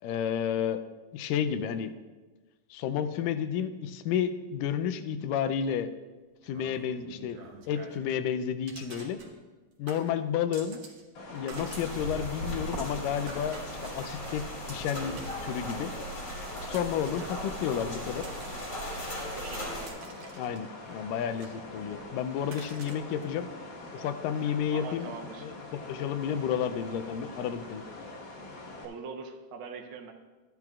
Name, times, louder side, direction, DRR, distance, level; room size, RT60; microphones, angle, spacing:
voice 1, 0.0-0.8 1.1-1.9 2.7-5.9 6.4-7.4 7.7-9.2 9.8-10.8 11.3-13.6 13.9-15.9 16.7-18.3 20.3-23.5 23.9-25.1 25.4-27.8, left 8 dB, 90° left, 11 dB, 2.2 m, -31 dB
sound 1, 6.4-8.2 8.7-9.6 9.9-11.1 11.3-15.9 16.6-17.3 17.9-18.9 19.4-20.9 21.4-22.0 22.5-23.3, right 4 dB, 60° right, 2.2 m, -49 dB
sound 2, 11.2-28.9, left 2 dB, 70° left, 2.9 m, -45 dB
sound 3, 11.5-19.9, equal, 40° left, 1.9 m, -38 dB
voice 2, 19.2-19.9 24.7-25.5 28.8-30.1, right 5 dB, 80° right, 1 dB, 1.1 m, -42 dB
13.5 x 10.5 x 2.4 m, 1.3 s
omnidirectional pair, 3.8 m